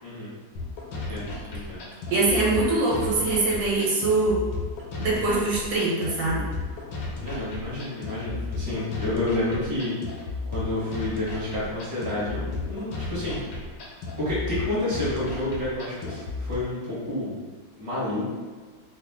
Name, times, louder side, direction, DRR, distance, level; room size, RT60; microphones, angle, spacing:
voice 1, 0.0-0.3 0.9-1.8 7.2-13.4 14.2-17.4 17.8-18.3, left 1 dB, 10° right, -9 dB, 0.8 m, -30 dB
sound 1, 0.6-16.6, left 3 dB, 85° left, 1.5 m, -34 dB
voice 2, 2.1-4.4 5.0-6.4, right 2 dB, 75° right, -5 dB, 1.5 m, -23 dB
3.5 x 2.4 x 3.5 m, 1.5 s
omnidirectional pair, 2.1 m